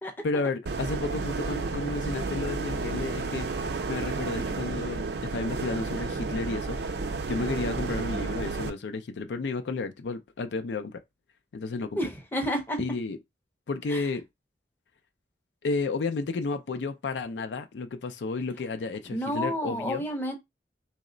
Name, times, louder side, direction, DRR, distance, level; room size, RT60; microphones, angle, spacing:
voice 1, 0.2-3.5 3.9-6.8 7.3-11.0 11.5-12.0 12.8-13.2 13.7-14.2 15.6-20.1, left 3 dB, 75° left, 0.4 m, -32 dB
sound 1, 0.7-8.7, right 4 dB, 65° right, 0.5 m, -32 dB
voice 2, 12.0-12.8 13.9-14.0 19.1-20.4, equal, 10° left, 0.6 m, -30 dB
3.1 x 2.1 x 3.7 m
head